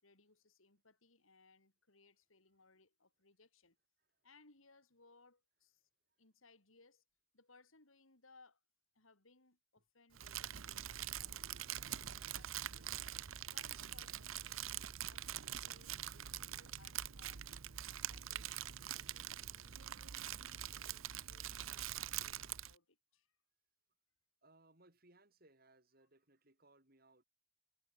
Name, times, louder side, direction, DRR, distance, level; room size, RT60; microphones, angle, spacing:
voice 1, 0.0-3.8 4.2-5.9 6.2-7.0 7.3-8.6 8.9-13.1 13.5-17.4 17.9-19.8 20.3-23.4, left 3 dB, 85° left, 4.0 m, -67 dB
Crumpling crinkling, 10.2-22.8, right 11 dB, 85° right, 0.8 m, -44 dB
voice 2, 24.4-27.2, right 2 dB, 45° right, 4.6 m, -68 dB
head